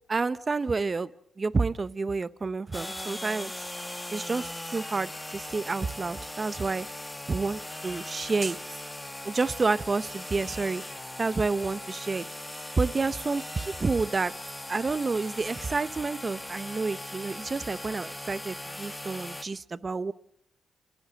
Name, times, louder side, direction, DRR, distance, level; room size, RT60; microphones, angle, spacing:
voice 1, 0.1-1.1 1.4-3.6 4.1-6.9 7.3-8.6 9.2-10.8 11.2-12.3 12.8-14.3 14.7-20.1, right 4 dB, 35° right, 17 dB, 0.8 m, -29 dB
sound 1, 2.7-19.4, left 1 dB, 10° left, 1.8 m, -39 dB
29.0 x 13.5 x 7.7 m, 0.71 s
cardioid pair, 65°, 0 cm